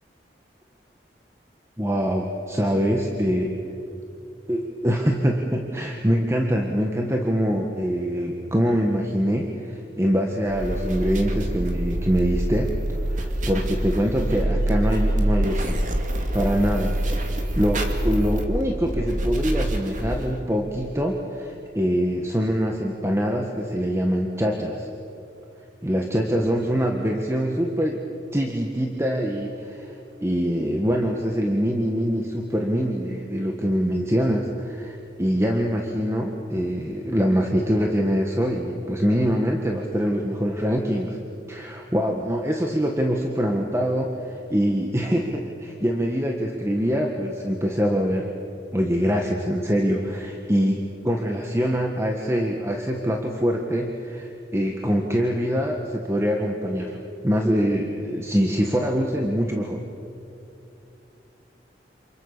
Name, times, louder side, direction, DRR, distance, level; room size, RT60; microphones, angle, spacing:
voice 1, 1.8-3.6 4.5-12.7 13.1-15.8 16.3-17.3 17.5-24.9 25.8-28.0 28.3-29.9 30.2-41.2 41.5-48.3 48.7-50.8 51.0-57.0 57.2-59.8, equal, 15° right, 1 dB, 1.6 m, -24 dB
sound 1, 10.5-20.4, right 1 dB, 45° right, 2.8 m, -25 dB
29.0 x 28.0 x 6.9 m, 2.8 s
head